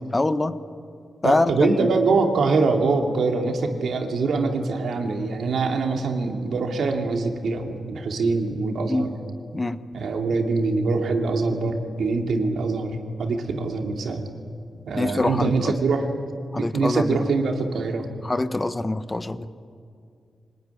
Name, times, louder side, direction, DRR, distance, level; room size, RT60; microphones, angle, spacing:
voice 1, 0.1-0.5 1.2-1.9 8.9-9.1 9.5-9.8 14.9-15.7 16.5-17.2 18.2-19.5, left 2 dB, 20° left, 12 dB, 0.9 m, -24 dB
voice 2, 1.2-9.1 9.9-14.3 14.9-16.1 16.6-18.1, right 4 dB, 80° right, 3 dB, 2.7 m, -24 dB
25.0 x 19.0 x 9.9 m, 2.3 s
wide cardioid pair, 105°, 0 cm